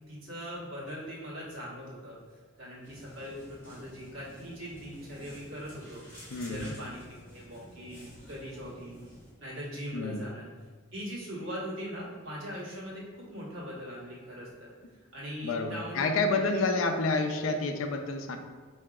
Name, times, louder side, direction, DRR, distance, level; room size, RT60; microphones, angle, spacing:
voice 1, 0.1-2.2 2.6-6.0 6.5-9.1 9.4-10.4 10.9-14.7 15.1-16.8, equal, 75° right, -6 dB, 1.3 m, -41 dB
sound 1, 2.8-9.3, equal, 10° left, 1.4 m, -51 dB
voice 2, 6.3-6.7 9.9-10.2 15.4-18.4, left 3 dB, 85° left, 5 dB, 0.4 m, -29 dB
4.8 x 2.7 x 2.3 m, 1.5 s
head